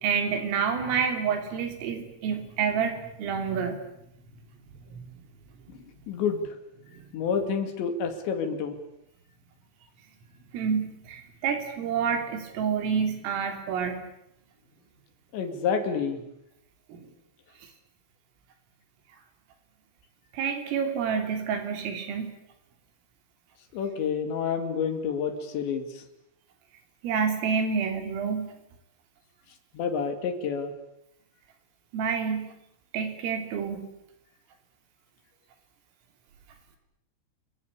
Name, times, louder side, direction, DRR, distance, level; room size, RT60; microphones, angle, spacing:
voice 1, 0.0-3.8 4.9-5.0 5.7-5.8 10.5-14.0 16.9-17.0 20.3-22.3 27.0-28.5 31.9-32.5 32.9-33.9, right 6 dB, 80° right, 6 dB, 5.9 m, -28 dB
voice 2, 6.1-6.6 7.1-8.8 15.3-16.2 23.7-26.0 29.7-30.7, left 6 dB, 65° left, 7 dB, 4.4 m, -29 dB
28.0 x 23.0 x 8.5 m, 0.80 s
omnidirectional pair, 5.8 m